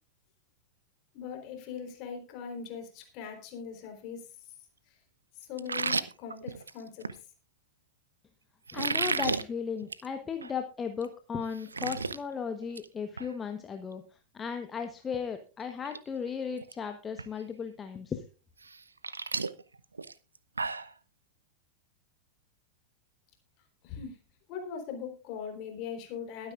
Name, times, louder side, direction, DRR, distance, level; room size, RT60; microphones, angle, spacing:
voice 1, 1.1-4.3 5.5-7.0 23.8-24.2 24.5-26.5, left 7 dB, 40° left, 4 dB, 3.8 m, -40 dB
sound 1, 5.6-7.2 8.7-9.4 9.8-10.1 10.4-10.5 11.0-11.1 11.4-12.2 12.5-12.9 13.2-13.3 15.1-15.2 15.7-16.0 16.3-16.7 17.2-17.3 18.6-20.9, right 4 dB, 75° right, 0.6 m, -33 dB
voice 2, 8.7-14.0 14.3-18.2, left 6 dB, 20° left, 7 dB, 1.1 m, -36 dB
21.5 x 9.4 x 2.5 m, 0.33 s
figure-of-eight pair, 90°, 0 cm